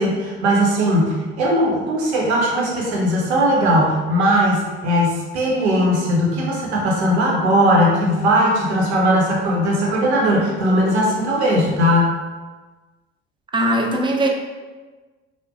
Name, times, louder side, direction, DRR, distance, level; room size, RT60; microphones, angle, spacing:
voice 1, 0.0-12.1, equal, 75° right, -2 dB, 0.8 m, -18 dB
voice 2, 13.5-14.3, right 1 dB, 15° right, 1 dB, 0.4 m, -19 dB
4.4 x 2.1 x 2.4 m, 1.3 s
figure-of-eight pair, 55°, 33 cm